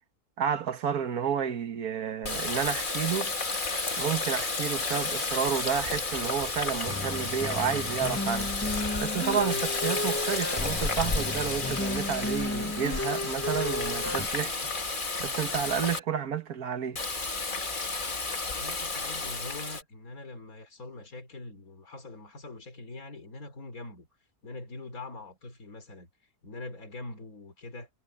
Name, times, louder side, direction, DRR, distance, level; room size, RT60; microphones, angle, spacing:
voice 1, 0.4-3.3 4.0-8.5 9.0-14.7 15.2-17.0, right 8 dB, 70° right, 1.8 m, -31 dB
Water tap faucet, 2.2-16.0 17.0-19.8, left 3 dB, 30° left, 1.8 m, -32 dB
sound 1, 6.9-14.3, left 2 dB, 10° left, 0.9 m, -33 dB
voice 2, 9.4-9.7 18.6-24.1 24.4-26.1 26.4-27.9, left 2 dB, 65° left, 4.1 m, -43 dB
omnidirectional pair, 1.7 m